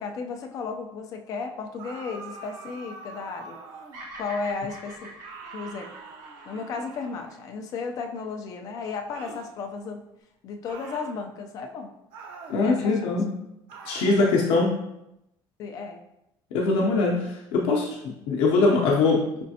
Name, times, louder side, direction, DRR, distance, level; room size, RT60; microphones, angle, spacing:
voice 1, 0.0-3.6 4.2-5.1 5.5-5.9 6.5-10.0 10.4-11.9 12.6-13.2 14.1-14.3 15.6-16.0, left 4 dB, 40° left, 5 dB, 0.4 m, -34 dB
sound 1, 1.8-4.1 5.2-7.5 9.1-9.5 10.7-11.1 12.1-12.6 13.7-14.1, right 4 dB, 65° right, 0.7 m, -44 dB
Bird vocalization bird call bird song, 3.9-8.2, right 1 dB, 45° right, 1.3 m, -45 dB
voice 2, 12.5-13.3 13.8-14.8 16.5-19.4, left 3 dB, 85° left, -2 dB, 0.7 m, -22 dB
5.2 x 3.2 x 2.7 m, 0.86 s
cardioid pair, 175°, 9 cm